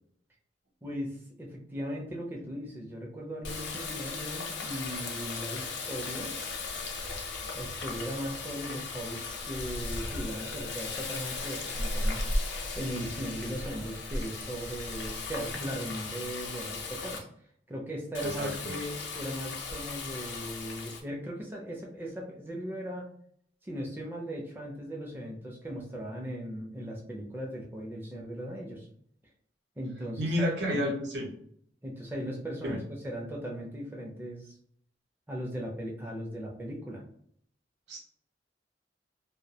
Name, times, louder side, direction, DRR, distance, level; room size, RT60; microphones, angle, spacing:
voice 1, 0.8-6.4 7.5-12.2 12.7-17.3 17.7-23.1 23.6-28.9 29.8-31.0 31.8-34.5 35.3-37.0, equal, 10° right, -2 dB, 0.4 m, -38 dB
Water tap faucet, 3.4-17.2 18.1-21.0, left 3 dB, 85° left, 0.5 m, -36 dB
voice 2, 18.2-18.7 30.2-31.3 32.6-32.8 37.9-38.0, equal, 75° right, 0 dB, 0.6 m, -30 dB
2.3 x 2.0 x 2.7 m, 0.64 s
head